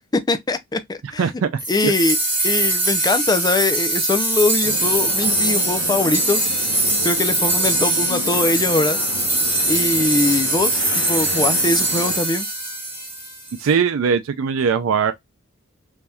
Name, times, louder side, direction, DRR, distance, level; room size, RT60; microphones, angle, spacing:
voice 1, 0.1-1.3 1.7-2.2 2.4-6.5 7.0-9.0 9.7-12.5, left 3 dB, 20° left, 0.4 m, -22 dB
voice 2, 1.2-1.5 1.8-1.9 13.6-15.1, right 6 dB, 80° right, 0.4 m, -20 dB
sound 1, 1.6-13.6, right 2 dB, 10° right, 1.4 m, -21 dB
sound 2, 4.6-12.2, left 4 dB, 70° left, 0.7 m, -32 dB
3.4 x 2.7 x 2.2 m
head